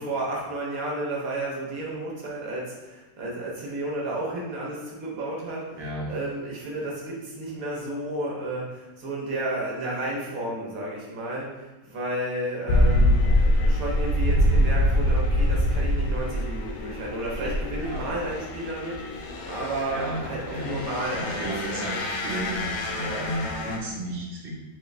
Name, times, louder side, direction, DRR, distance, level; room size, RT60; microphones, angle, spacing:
voice 1, 0.0-22.0 23.0-23.2, right 1 dB, 75° right, -3 dB, 1.2 m, -32 dB
voice 2, 5.7-6.1 17.8-18.1 19.4-19.5 19.9-20.2 20.5-20.8 21.1-24.6, right 1 dB, 45° right, -4 dB, 1.1 m, -33 dB
sound 1, 12.7-23.8, left 1 dB, 90° left, 1.2 m, -25 dB
5.0 x 3.8 x 2.5 m, 1.1 s
omnidirectional pair, 1.5 m